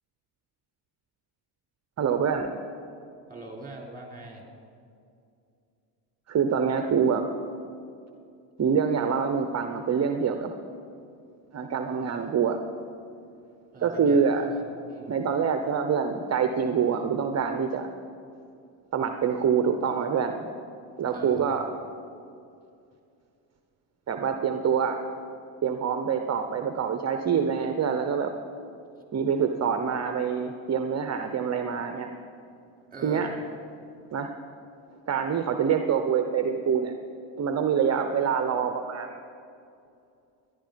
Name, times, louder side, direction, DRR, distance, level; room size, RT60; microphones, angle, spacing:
voice 1, 2.0-2.5 6.3-7.2 8.6-10.5 11.5-12.6 13.8-14.5 15.1-17.9 18.9-20.5 21.0-21.7 24.1-25.0 25.6-28.3 29.1-32.1 33.0-33.3 34.1-34.3 35.1-36.9 37.4-39.2, right 7 dB, 35° right, 6 dB, 0.9 m, -25 dB
voice 2, 3.3-4.4 13.7-15.2 21.1-21.5 32.9-33.4, right 2 dB, 20° right, 0 dB, 3.5 m, -42 dB
18.5 x 11.0 x 5.2 m, 2.5 s
supercardioid pair, 85°, 44 cm